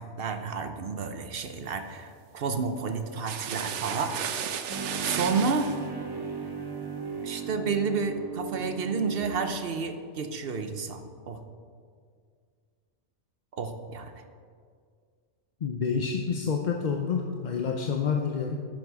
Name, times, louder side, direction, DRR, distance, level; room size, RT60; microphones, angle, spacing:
voice 1, 0.0-4.2 5.0-5.7 7.2-11.4 13.5-14.1, right 4 dB, 55° right, 8 dB, 1.0 m, -31 dB
sound 1, 3.2-5.8, right 8 dB, 85° right, 1.0 m, -33 dB
sound 2, 4.7-9.7, right 5 dB, 20° right, 1.0 m, -36 dB
voice 2, 15.6-18.6, left 6 dB, 45° left, 3 dB, 0.7 m, -28 dB
11.0 x 9.2 x 4.8 m, 2.1 s
omnidirectional pair, 1.2 m